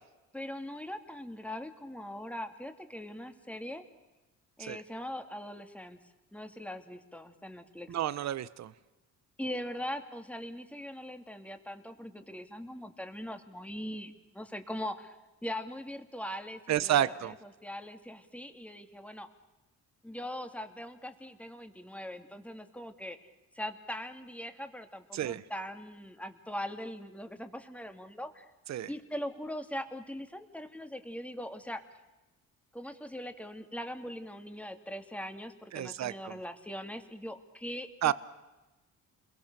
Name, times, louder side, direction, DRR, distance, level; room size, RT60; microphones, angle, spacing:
voice 1, 0.3-3.8 4.6-6.0 6.3-7.9 9.4-17.3 17.6-19.3 20.0-23.2 23.5-28.5 28.9-31.8 32.7-38.1, equal, 5° left, 7 dB, 2.5 m, -41 dB
voice 2, 7.9-8.7 16.7-17.3 25.1-25.4 28.7-28.9 35.7-36.4 38.0-38.1, right 11 dB, 65° right, 16 dB, 1.0 m, -30 dB
28.5 x 22.0 x 6.8 m, 1.1 s
cardioid pair, 90°, 30 cm